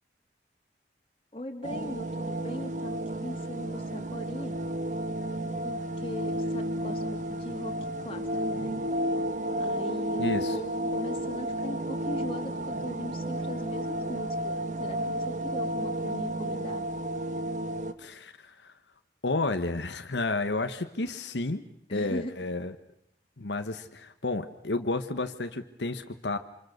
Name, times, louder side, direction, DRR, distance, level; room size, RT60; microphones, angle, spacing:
voice 1, 1.3-4.6 5.6-7.7 8.0-8.8 9.6-16.9 21.9-22.3, left 1 dB, 30° left, 4 dB, 2.9 m, -39 dB
sound 1, 1.6-17.9, right 1 dB, 45° right, 1.3 m, -32 dB
voice 2, 10.2-10.6 18.0-18.7 19.2-22.7 23.4-26.4, left 2 dB, 85° left, 8 dB, 1.2 m, -31 dB
27.0 x 26.5 x 6.6 m, 0.77 s
head